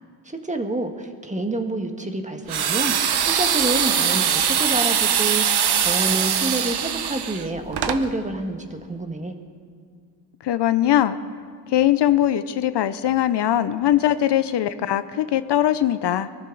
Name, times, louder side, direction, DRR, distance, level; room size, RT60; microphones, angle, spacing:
voice 1, 0.2-9.4, right 2 dB, 15° right, 4 dB, 1.6 m, -28 dB
sound 1, 2.5-8.0, right 8 dB, 60° right, 1.0 m, -22 dB
voice 2, 10.4-11.2 11.7-16.3, left 12 dB, 65° left, 13 dB, 0.7 m, -21 dB
23.0 x 14.0 x 4.0 m, 2.2 s
cardioid pair, 80°, 45 cm